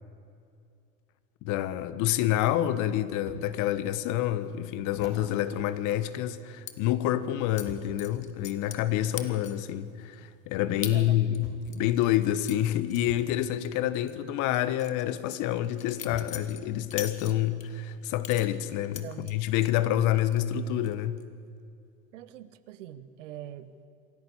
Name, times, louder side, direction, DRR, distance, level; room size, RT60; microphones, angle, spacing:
voice 1, 1.4-21.2, left 12 dB, 50° left, 1.2 m, -28 dB
sound 1, 3.3-3.5 4.1-4.2 4.9-6.8 7.7-8.0 9.2-9.3 10.6-10.7 11.4-11.8 13.1-13.3 14.9-15.0 16.1-16.5 17.2-17.3, left 2 dB, 25° left, 3.5 m, -48 dB
sound 2, 6.7-6.8 7.6-7.7 8.0-8.9 9.2-9.7 10.1-10.2 10.8-11.0 11.3-13.7 13.9-14.1 14.5-17.7 18.2-19.7 20.1-20.6 20.8-21.2, left 9 dB, 85° left, 1.4 m, -41 dB
voice 2, 10.8-11.2 19.0-19.4 22.1-23.9, right 12 dB, 70° right, 1.2 m, -43 dB
26.5 x 11.5 x 8.6 m
hypercardioid pair, 90°, 39 cm